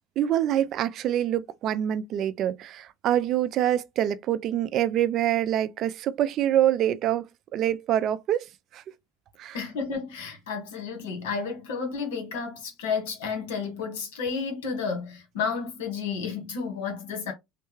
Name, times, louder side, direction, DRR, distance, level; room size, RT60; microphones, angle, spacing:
voice 1, 0.2-7.3 7.5-8.5 8.7-8.8 9.4-9.6, right 11 dB, 50° right, 0.4 m, -25 dB
voice 2, 9.5-17.3, left 5 dB, 85° left, 1.3 m, -31 dB
3.2 x 2.2 x 3.1 m
supercardioid pair, 110°, 0 cm